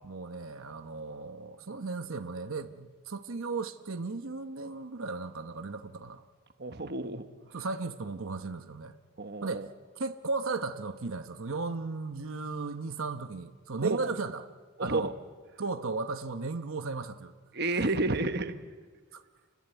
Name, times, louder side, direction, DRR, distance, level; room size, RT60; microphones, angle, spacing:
voice 1, 0.0-6.2 7.5-8.9 9.4-9.7 10.0-14.4 14.8-15.1 15.6-17.3 19.1-19.2, right 3 dB, 80° right, 8 dB, 1.0 m, -36 dB
voice 2, 6.6-7.3 9.2-9.7 13.8-14.0 14.8-15.1 17.5-18.6, right 2 dB, 50° right, 9 dB, 1.2 m, -30 dB
29.0 x 20.0 x 8.0 m, 1.5 s
head